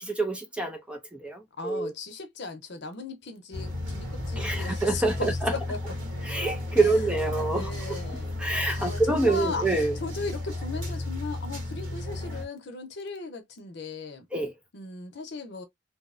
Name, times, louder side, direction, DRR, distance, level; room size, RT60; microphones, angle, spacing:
voice 1, 0.0-1.9 4.4-5.5 6.3-7.7 8.4-9.9 14.3-14.5, right 2 dB, 5° right, 0.3 m, -26 dB
voice 2, 1.6-5.9 6.8-9.7 9.9-14.3 14.7-15.6, left 4 dB, 55° left, 0.7 m, -37 dB
sound 1, 3.5-12.5, left 2 dB, 75° right, 1.1 m, -33 dB
2.7 x 2.0 x 2.4 m
head